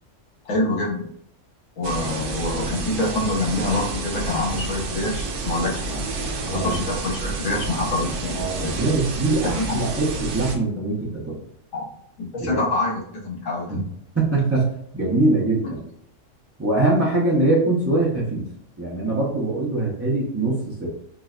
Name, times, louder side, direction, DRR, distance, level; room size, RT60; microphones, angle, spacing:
voice 1, 0.5-1.1 1.8-6.0 6.5-8.9 9.4-9.8 11.7-11.9 12.3-13.8, left 2 dB, 80° left, -4 dB, 1.5 m, -26 dB
sound 1, 1.8-10.6, right 3 dB, 75° right, 1.0 m, -29 dB
voice 2, 6.4-6.8 8.0-11.4 12.4-12.6 13.7-13.8 14.2-14.7 14.9-15.8 16.6-18.5 18.8-20.9, right 2 dB, 25° right, -6 dB, 0.3 m, -23 dB
4.5 x 2.1 x 2.4 m, 0.70 s
omnidirectional pair, 1.3 m